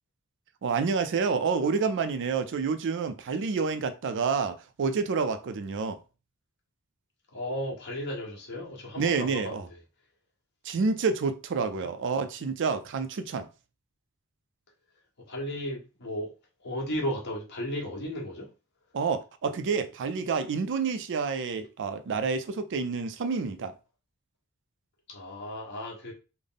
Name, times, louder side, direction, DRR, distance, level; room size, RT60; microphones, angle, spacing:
voice 1, 0.6-6.0 9.0-9.7 10.6-13.5 18.9-23.7, right 5 dB, 55° right, 0.4 m, -28 dB
voice 2, 7.3-9.6 15.3-16.3 16.6-18.5 25.1-26.1, equal, 50° left, 1.2 m, -34 dB
3.5 x 2.1 x 3.8 m
head